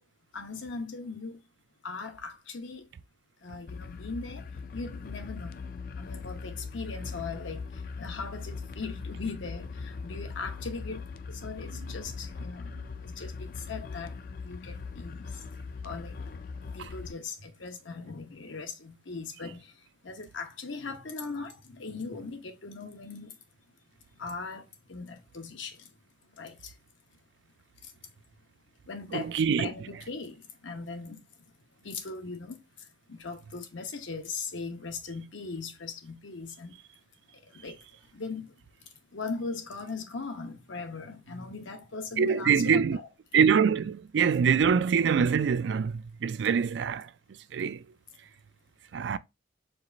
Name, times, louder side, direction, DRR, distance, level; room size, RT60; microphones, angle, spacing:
voice 1, 0.3-1.4 1.8-2.8 3.4-4.5 4.7-5.6 6.0-7.6 8.0-12.7 13.0-14.1 14.4-15.5 15.8-16.4 16.7-19.7 20.0-23.3 24.2-25.9 26.4-26.7 28.9-31.2 31.8-32.6 33.1-36.8 37.4-37.8 38.1-38.5 39.1-43.1, left 4 dB, 80° left, 0.9 m, -39 dB
sound 1, 3.7-17.1, left 4 dB, 50° left, 0.3 m, -40 dB
voice 2, 29.1-29.7 42.2-43.0 43.3-47.1 47.5-47.8 48.9-49.2, right 6 dB, 70° right, 0.3 m, -24 dB
4.6 x 2.4 x 3.9 m
head